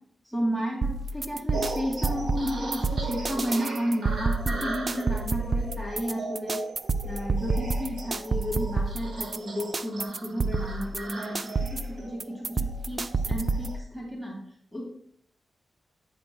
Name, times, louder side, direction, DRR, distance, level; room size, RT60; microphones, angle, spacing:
voice 1, 0.3-6.6 7.0-14.4 14.7-14.8, equal, 10° right, -2 dB, 2.2 m, -32 dB
sound 1, 0.8-13.8, right 3 dB, 30° right, 0.3 m, -29 dB
sound 2, 1.5-13.8, right 3 dB, 85° right, 1.4 m, -38 dB
10.0 x 8.0 x 2.3 m, 0.65 s
wide cardioid pair, 175°, 0 cm